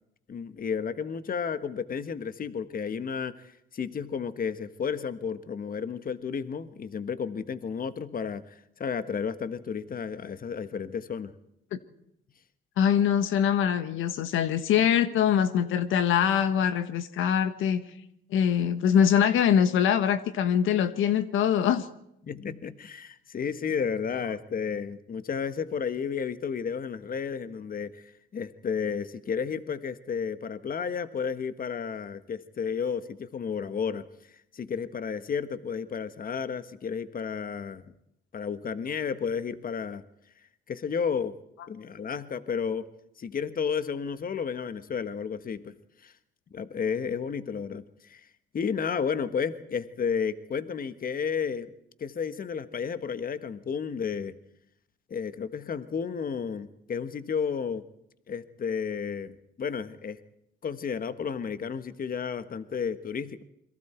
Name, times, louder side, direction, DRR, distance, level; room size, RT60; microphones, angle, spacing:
voice 1, 0.3-3.4 3.7-11.3 22.2-34.0 34.5-37.9 38.3-40.0 40.7-41.3 41.7-42.8 43.2-45.7 46.0-46.1 46.5-48.3 48.5-51.7 52.0-54.3 55.1-57.8 58.3-60.2 60.6-63.4, left 6 dB, 45° left, 11 dB, 1.5 m, -32 dB
voice 2, 12.8-17.8 18.3-21.9, left 8 dB, 85° left, 11 dB, 1.4 m, -23 dB
28.5 x 22.5 x 4.5 m, 0.78 s
cardioid pair, 90°, 20 cm